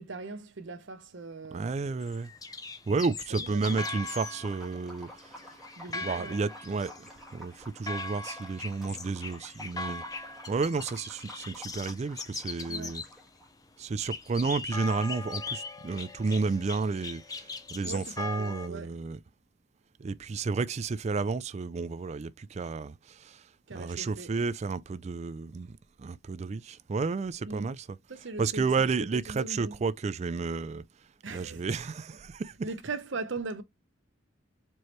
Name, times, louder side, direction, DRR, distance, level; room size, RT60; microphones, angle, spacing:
voice 1, 0.0-1.7 3.5-3.8 5.8-6.4 12.7-13.0 17.8-19.0 23.7-24.3 27.5-27.7 28.1-29.8 31.2-31.8 32.6-33.6, right 3 dB, 70° right, 0.8 m, -39 dB
voice 2, 1.5-2.3 2.9-5.1 5.4-5.6 6.0-10.0 10.5-13.0 13.8-19.2 20.0-23.4 23.7-27.9 28.4-30.8 31.3-32.5, right 4 dB, 35° right, 0.3 m, -31 dB
sound 1, 2.0-13.2 14.0-18.7, left 3 dB, 20° left, 0.6 m, -40 dB
Liquid, 3.6-13.5, left 1 dB, ahead, 1.4 m, -50 dB
4.6 x 3.1 x 3.0 m
head